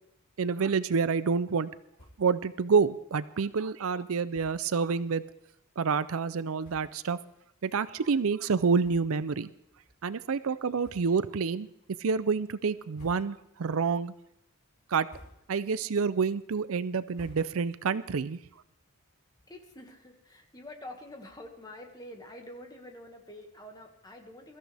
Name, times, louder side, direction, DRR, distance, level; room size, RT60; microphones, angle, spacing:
voice 1, 0.4-1.7 2.2-5.2 5.8-7.2 7.6-9.5 10.0-11.7 12.0-14.1 14.9-15.1 15.5-18.4, right 5 dB, 65° right, 15 dB, 0.5 m, -28 dB
sound 1, 1.9-2.4 2.7-2.8 3.1-3.3 4.3-4.7 5.5-5.6 6.2-6.3 6.6-7.1 7.7-7.8 8.8-9.4 9.8-9.9 10.8-11.4 11.8-12.3 12.7-13.6 14.0-14.4 14.8-15.7 16.1-17.9, left 1 dB, 80° left, 4.9 m, -56 dB
voice 2, 19.5-24.6, left 1 dB, 20° left, 2 dB, 1.9 m, -47 dB
22.5 x 14.0 x 3.5 m, 0.77 s
head